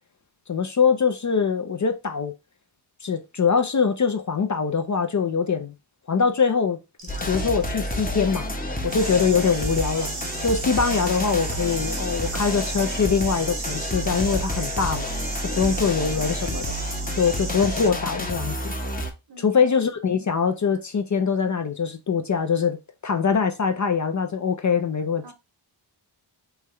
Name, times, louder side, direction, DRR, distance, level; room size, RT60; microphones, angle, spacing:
voice 1, 0.5-2.3 3.0-5.7 6.1-6.8 7.3-8.5 8.8-10.1 10.4-15.1 15.6-16.7 17.2-18.7 19.4-22.8 23.0-25.3, left 6 dB, 40° left, 0.4 m, -23 dB
sound 1, 7.0-7.7 8.8-17.9, right 4 dB, 80° right, 1.1 m, -35 dB
sound 2, 7.1-19.1, equal, 15° left, 0.7 m, -29 dB
voice 2, 19.3-19.7 25.2-25.3, right 2 dB, 50° right, 0.7 m, -46 dB
3.4 x 2.2 x 3.0 m
cardioid pair, 40°, 50 cm